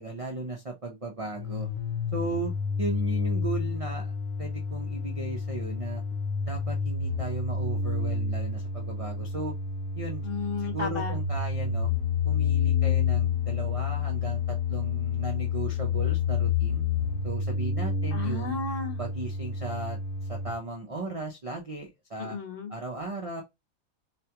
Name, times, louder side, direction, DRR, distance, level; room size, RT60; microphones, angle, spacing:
voice 1, 0.0-1.7 2.1-2.5 2.8-4.1 4.4-6.0 6.4-9.5 9.9-10.3 10.6-11.9 12.2-16.8 17.2-18.6 19.0-20.0 20.3-22.4 22.7-23.4, right 2 dB, 40° right, 0.5 m, -36 dB
sound 1, 1.3-20.5, left 5 dB, 80° left, 1.1 m, -29 dB
voice 2, 10.2-11.2 18.1-19.0 22.2-22.7, left 5 dB, 45° left, 1.2 m, -33 dB
4.1 x 2.2 x 2.9 m
omnidirectional pair, 1.5 m